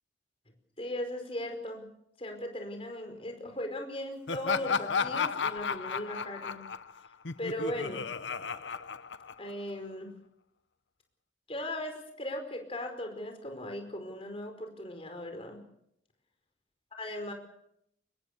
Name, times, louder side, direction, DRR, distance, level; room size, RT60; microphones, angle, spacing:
voice 1, 0.8-1.9 2.2-6.6 7.4-8.0 9.4-10.1 11.5-15.6 17.0-17.3, left 1 dB, 30° left, 5 dB, 4.9 m, -38 dB
Laughter, 4.3-9.7, left 5 dB, 75° left, 0.9 m, -33 dB
25.0 x 21.0 x 6.7 m, 0.75 s
head